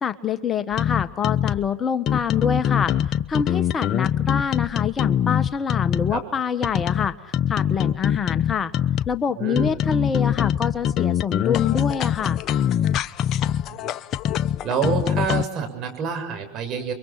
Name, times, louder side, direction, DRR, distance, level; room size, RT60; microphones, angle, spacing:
voice 1, 0.0-8.7 9.1-12.4, left 7 dB, 30° left, 11 dB, 1.3 m, -26 dB
sound 1, 0.7-1.7 2.1-6.2 6.6-9.2 9.6-15.4, left 9 dB, 45° left, 0.8 m, -23 dB
voice 2, 9.4-9.8 13.6-13.8 14.6-16.9, right 6 dB, 45° right, 6 dB, 7.0 m, -27 dB
30.0 x 23.5 x 5.9 m, 0.90 s
hypercardioid pair, 90°, 0 cm